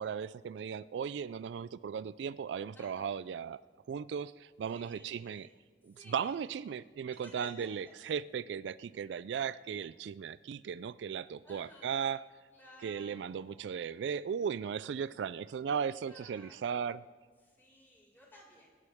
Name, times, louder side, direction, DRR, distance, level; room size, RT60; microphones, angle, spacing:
voice 1, 0.0-3.6 3.9-5.5 5.8-12.2 12.8-17.0, right 7 dB, 80° right, 17 dB, 0.3 m, -37 dB
voice 2, 2.7-3.1 4.7-5.5 5.9-6.7 7.1-7.9 11.4-12.1 12.5-13.7 16.1-16.9 17.4-18.7, left 1 dB, 10° left, -7 dB, 4.5 m, -57 dB
25.0 x 11.0 x 3.6 m, 1.5 s
head